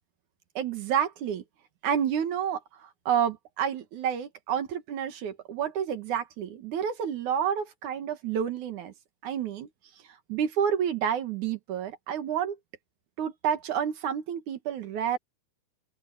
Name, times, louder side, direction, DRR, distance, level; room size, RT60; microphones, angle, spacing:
voice 1, 0.6-1.4 1.8-2.6 3.1-8.9 9.2-9.7 10.3-12.6 13.2-15.2, right 8 dB, 65° right, 2.8 m, -29 dB
open air
omnidirectional pair, 3.9 m